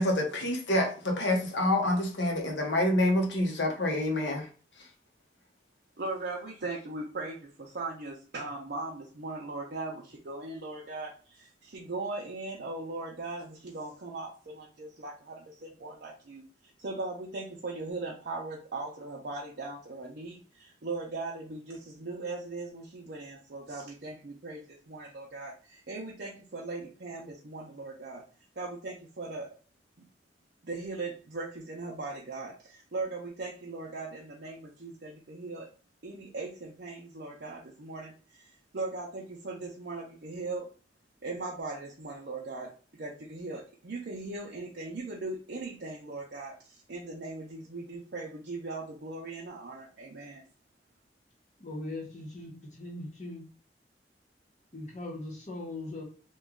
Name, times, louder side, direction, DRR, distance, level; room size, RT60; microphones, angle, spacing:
voice 1, 0.0-4.5, left 1 dB, 80° left, 0.8 m, -27 dB
voice 2, 6.0-16.4 16.8-28.2 28.6-29.5 30.6-35.7 36.0-40.7 41.2-50.4, right 3 dB, 60° right, 0.6 m, -39 dB
voice 3, 51.6-53.4 54.7-56.0, left 2 dB, 40° left, 0.9 m, -40 dB
3.0 x 2.3 x 3.6 m
head